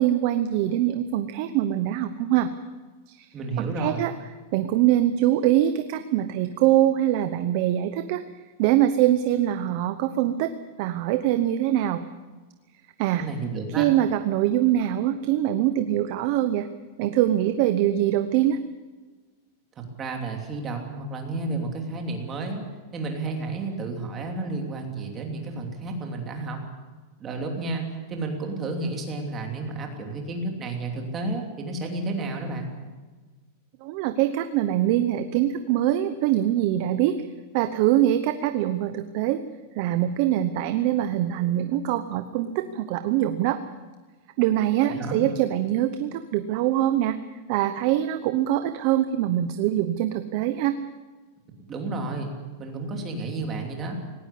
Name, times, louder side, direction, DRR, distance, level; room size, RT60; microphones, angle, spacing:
voice 1, 0.0-2.5 3.1-3.3 3.6-4.1 4.5-8.2 8.6-10.5 10.8-12.0 13.0-13.3 13.8-16.7 17.0-18.6 33.8-37.2 37.5-39.4 39.7-43.6 44.4-47.2 47.5-50.7, right 12 dB, 40° right, 10 dB, 0.9 m, -23 dB
voice 2, 3.3-4.1 13.1-13.9 19.8-22.6 22.9-26.6 27.2-27.8 28.1-32.7 44.8-45.2 51.7-52.3 52.6-54.0, right 3 dB, 20° right, 2 dB, 3.0 m, -31 dB
19.0 x 18.5 x 8.5 m, 1.3 s
supercardioid pair, 175°, 0 cm